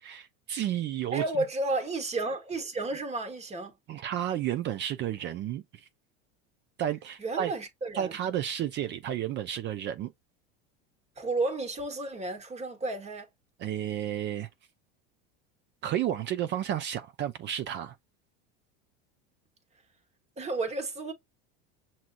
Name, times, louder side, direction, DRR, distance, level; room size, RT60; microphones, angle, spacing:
voice 1, 0.0-1.2 3.9-5.8 6.8-7.5 7.9-10.1 13.6-14.5 15.8-17.9, right 11 dB, 40° right, 0.5 m, -32 dB
voice 2, 1.1-3.7 7.2-8.2 11.2-13.3 20.4-21.1, right 2 dB, 20° right, 1.3 m, -32 dB
6.0 x 2.7 x 2.5 m
supercardioid pair, 115°, 29 cm